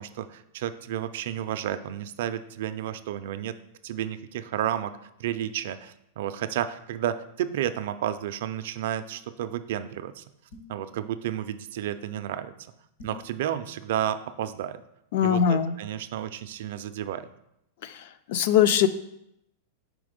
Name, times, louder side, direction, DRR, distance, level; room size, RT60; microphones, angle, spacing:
voice 1, 0.0-3.6 3.8-10.2 10.7-12.5 13.0-14.8 15.2-17.3, right 11 dB, 55° right, 11 dB, 0.4 m, -32 dB
sound 1, 10.5-10.9 13.0-13.3, left 3 dB, 70° left, 1.8 m, -46 dB
voice 2, 15.1-15.8 17.8-18.0 18.3-18.9, left 9 dB, 45° left, 12 dB, 0.3 m, -21 dB
4.8 x 3.8 x 5.1 m, 0.81 s
supercardioid pair, 175°, 0 cm